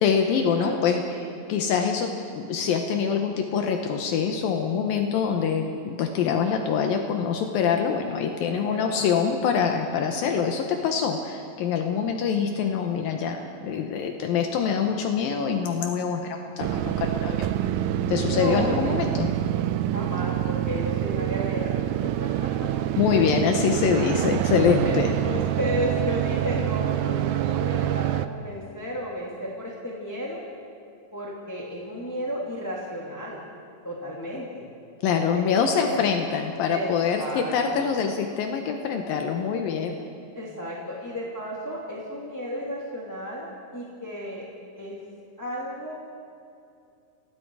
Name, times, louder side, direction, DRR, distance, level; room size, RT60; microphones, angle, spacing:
voice 1, 0.0-1.0 1.5-17.5 18.1-19.3 23.0-25.1 35.0-40.0, left 6 dB, 75° left, 4 dB, 2.8 m, -25 dB
voice 2, 8.4-9.0 18.3-19.0 19.9-21.7 22.0-22.7 24.8-30.4 31.1-33.4 33.8-34.6 35.3-36.0 36.7-37.9 40.3-44.4 44.8-45.0 45.4-45.9, equal, 5° left, -5 dB, 2.3 m, -33 dB
sound 1, 16.6-28.3, right 12 dB, 80° right, 1.8 m, -26 dB
29.0 x 18.5 x 4.8 m, 2.5 s
omnidirectional pair, 4.2 m